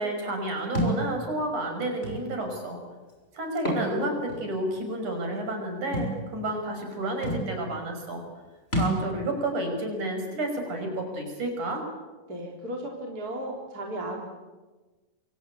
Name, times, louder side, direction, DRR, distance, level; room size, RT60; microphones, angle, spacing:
voice 1, 0.0-2.8 3.3-8.2 8.8-11.8, right 1 dB, 45° right, 4 dB, 7.2 m, -30 dB
Thump thud, 0.7-1.0 2.0-2.2 3.5-3.9 4.3-4.4 5.9-6.1 6.9-7.0 7.2-7.5 8.7-9.0, equal, 15° left, 6.1 m, -27 dB
voice 2, 12.3-14.2, right 1 dB, 25° right, 0 dB, 3.9 m, -35 dB
28.0 x 25.0 x 8.5 m, 1.2 s
omnidirectional pair, 4.7 m